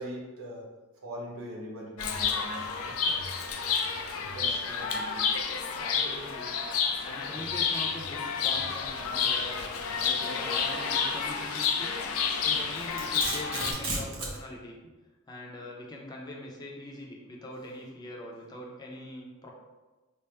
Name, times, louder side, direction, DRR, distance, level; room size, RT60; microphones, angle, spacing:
voice 1, 0.0-3.4 4.3-5.3 15.6-15.7, equal, 85° right, -2 dB, 0.6 m, -42 dB
Chirp tweet, 2.0-13.7, left 6 dB, 90° left, 0.4 m, -30 dB
voice 2, 5.8-6.5 7.0-9.7 10.0-12.0 12.4-14.8 15.3-19.5, left 1 dB, 20° left, -2 dB, 0.5 m, -43 dB
Domestic sounds home sounds, 12.5-14.4, right 2 dB, 70° right, 0.9 m, -34 dB
3.3 x 2.0 x 4.2 m, 1.2 s
head